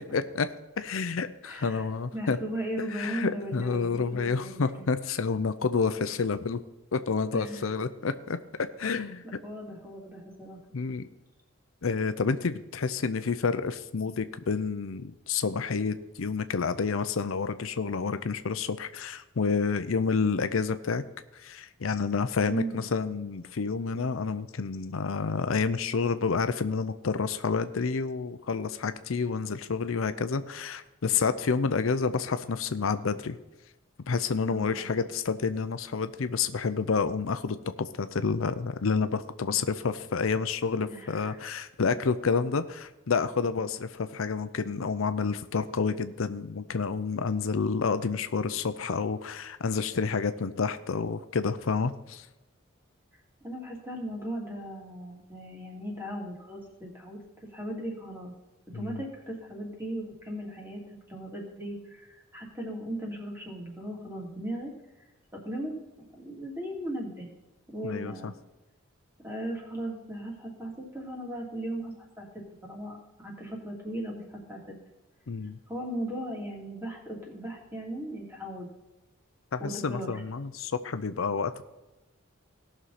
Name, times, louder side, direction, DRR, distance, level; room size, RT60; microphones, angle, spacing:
voice 1, 0.1-0.5 0.8-2.4 2.9-6.6 6.9-8.4 8.8-9.2 10.7-11.1 11.8-21.0 21.3-33.4 34.1-52.3 58.7-59.0 67.8-68.1 75.3-75.6 79.5-81.6, left 5 dB, 80° left, 11 dB, 0.6 m, -29 dB
voice 2, 1.4-4.9 7.3-7.7 8.8-10.6 22.5-22.9 34.5-35.0 40.9-41.4 53.4-57.2 57.5-58.3 58.7-64.7 65.3-65.7 66.2-67.3 67.7-68.3 69.2-72.3 72.6-74.2 74.5-74.6 75.7-78.7 79.6-80.2, right 1 dB, 10° right, -2 dB, 2.8 m, -37 dB
17.5 x 6.2 x 4.2 m, 1.0 s
head